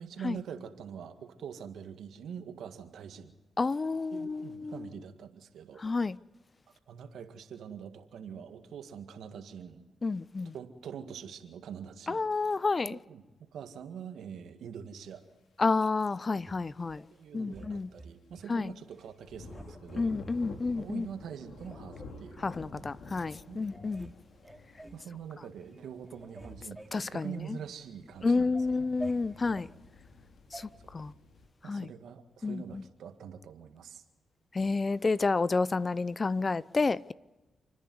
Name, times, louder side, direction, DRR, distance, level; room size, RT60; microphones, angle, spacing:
voice 1, 0.0-3.4 4.1-5.8 6.9-9.9 10.4-12.2 12.9-13.2 13.5-15.2 17.1-20.1 20.8-22.5 23.1-23.2 23.5-23.6 24.9-28.9 30.5-30.9 31.6-34.0, right 8 dB, 80° right, 1.9 m, -44 dB
voice 2, 3.6-4.9 5.8-6.2 10.0-10.5 12.1-13.0 15.6-17.0 17.3-17.9 18.5-18.7 20.0-21.1 22.4-24.1 26.9-27.3 28.2-29.7 30.5-30.7 30.9-31.1 31.7-31.9 32.4-32.8 34.5-37.1, left 3 dB, 35° left, 0.6 m, -30 dB
sound 1, 16.4-17.1 17.5-18.5 18.9-19.1 19.5-20.4 21.0-21.1 21.5-22.7 23.3-23.4 23.7-24.1 24.4-25.1 25.5-25.8 26.0-27.8 28.2-29.7 30.5-30.7, right 1 dB, 10° right, 2.8 m, -49 dB
sound 2, 18.2-18.4 18.8-31.5, left 3 dB, 75° left, 2.7 m, -51 dB
29.5 x 10.5 x 9.5 m
supercardioid pair, 55°, 0 cm